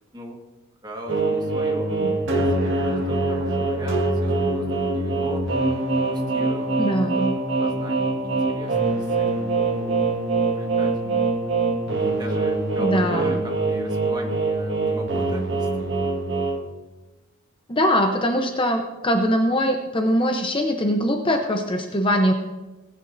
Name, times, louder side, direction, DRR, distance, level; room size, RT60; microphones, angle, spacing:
voice 1, 0.8-2.0 2.3-5.6 5.9-6.8 7.1-7.3 7.6-10.1 10.4-11.3 12.0-15.9, right 1 dB, 20° right, 1 dB, 1.6 m, -38 dB
sound 1, 1.1-16.6, right 3 dB, 55° right, 1.8 m, -24 dB
voice 2, 6.8-7.3 12.8-13.2 17.7-22.3, equal, 20° left, 3 dB, 0.8 m, -22 dB
19.5 x 9.9 x 2.7 m, 1.1 s
head